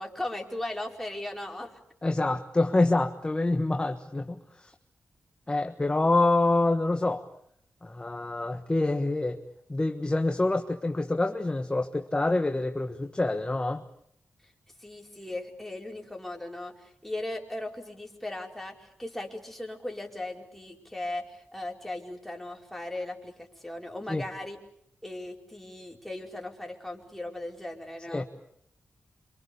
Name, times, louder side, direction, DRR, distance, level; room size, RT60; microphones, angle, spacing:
voice 1, 0.0-1.8 14.4-14.5 14.8-24.6 25.0-28.3, left 1 dB, 5° left, 1 dB, 4.7 m, -38 dB
voice 2, 2.0-4.7 5.5-7.2 7.8-9.4 9.7-13.8 24.1-24.2 28.1-28.3, left 2 dB, 20° left, 5 dB, 1.5 m, -26 dB
28.0 x 25.5 x 6.9 m, 0.72 s
wide cardioid pair, 85°, 4 cm